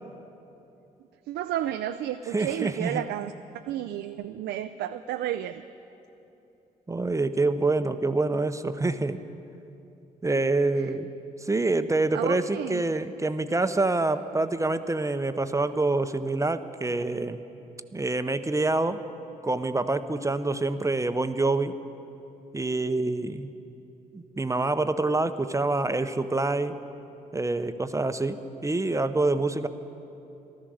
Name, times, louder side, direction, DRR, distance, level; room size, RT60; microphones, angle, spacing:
voice 1, 1.3-3.3 3.7-5.6 10.8-10.9 12.1-12.8, right 12 dB, 65° right, 9 dB, 0.5 m, -32 dB
voice 2, 2.3-3.0 6.9-9.2 10.2-11.1 11.4-17.4 17.9-19.0 19.4-21.8 22.5-23.5 24.1-26.8 27.3-29.7, right 2 dB, 15° right, 11 dB, 0.7 m, -26 dB
14.5 x 13.5 x 6.4 m, 2.9 s
hypercardioid pair, 45°, 19 cm